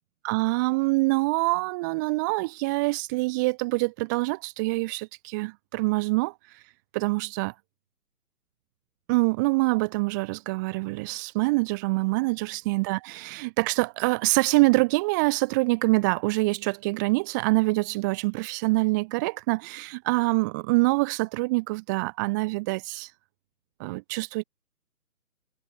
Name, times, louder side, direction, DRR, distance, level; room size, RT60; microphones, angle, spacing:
voice 1, 0.2-6.3 6.9-7.5 9.1-23.1 23.8-24.4, right 25 dB, 10° right, 2.5 m, -25 dB
hypercardioid pair, 165°, 45 cm